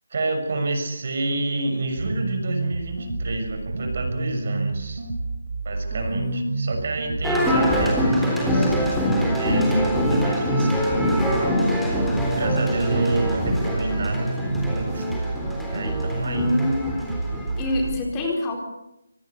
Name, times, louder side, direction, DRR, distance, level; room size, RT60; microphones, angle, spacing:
voice 1, 0.1-5.0 5.6-8.8 9.1-11.6 12.0-15.0 15.7-16.5, right 2 dB, 50° right, 5 dB, 6.4 m, -28 dB
sound 1, 2.0-18.0, right 3 dB, 70° right, 3.8 m, -29 dB
voice 2, 5.9-6.6 16.2-16.9 17.6-18.6, left 1 dB, 15° left, 1 dB, 4.4 m, -26 dB
sound 2, 7.2-17.9, equal, ahead, 3.8 m, -24 dB
25.5 x 19.0 x 8.1 m, 0.86 s
figure-of-eight pair, 165°, 0 cm